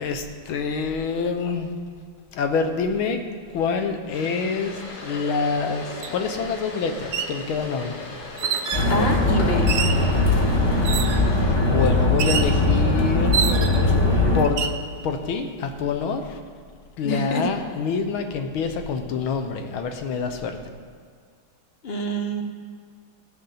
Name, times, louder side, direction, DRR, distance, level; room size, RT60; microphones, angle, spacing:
voice 1, 0.0-1.7 2.3-3.2 3.5-8.2 11.3-13.5 14.3-14.7 15.0-16.4 17.0-20.6, left 5 dB, 70° left, 6 dB, 1.6 m, -26 dB
sound 1, 4.1-11.6, left 2 dB, 90° left, 2.5 m, -37 dB
sound 2, 6.0-6.1 7.0-7.4 8.4-8.9 9.7-10.1 10.8-11.3 12.2-12.6 13.3-13.9 14.4-14.8, right 7 dB, 85° right, 0.7 m, -27 dB
sound 3, 8.7-14.4, left 2 dB, 15° left, 1.0 m, -20 dB
voice 2, 8.9-9.7 17.0-17.4 21.8-22.4, equal, 50° left, 3 dB, 0.7 m, -26 dB
16.0 x 6.6 x 5.7 m, 2.1 s
omnidirectional pair, 2.4 m